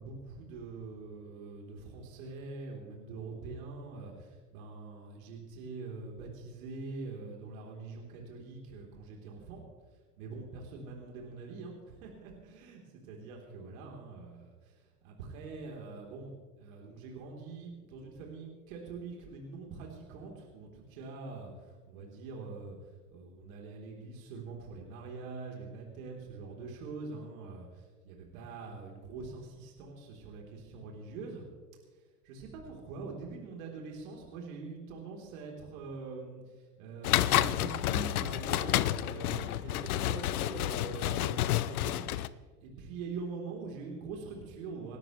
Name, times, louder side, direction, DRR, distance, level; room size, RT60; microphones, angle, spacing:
voice 1, 0.0-9.6 10.2-16.3 16.6-22.8 23.1-31.5 32.2-42.2 42.6-45.0, right 4 dB, 55° right, 0 dB, 3.8 m, -44 dB
sound 1, 37.0-42.3, left 14 dB, 60° left, 0.8 m, -30 dB
27.5 x 13.0 x 3.2 m, 1.5 s
hypercardioid pair, 95°, 49 cm